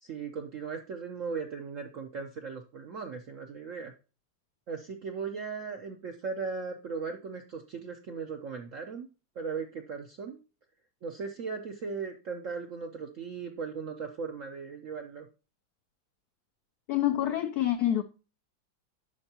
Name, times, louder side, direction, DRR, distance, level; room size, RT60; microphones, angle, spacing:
voice 1, 0.0-3.9 4.7-9.1 9.4-10.4 11.0-15.3, right 5 dB, 70° right, 0.7 m, -37 dB
voice 2, 16.9-18.0, left 12 dB, 80° left, 0.8 m, -27 dB
11.5 x 4.4 x 2.8 m
omnidirectional pair, 2.2 m